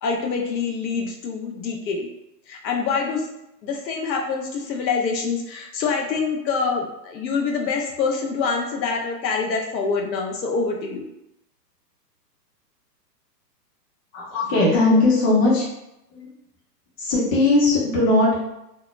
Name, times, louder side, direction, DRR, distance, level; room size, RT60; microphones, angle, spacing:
voice 1, 0.0-2.1 2.5-3.2 3.6-11.1 14.9-15.0, left 5 dB, 85° left, 1 dB, 0.7 m, -25 dB
voice 2, 14.1-15.6 16.1-16.3 17.0-18.4, left 2 dB, 25° left, -7 dB, 0.8 m, -19 dB
2.2 x 2.1 x 2.9 m, 0.86 s
hypercardioid pair, 140°, 50 cm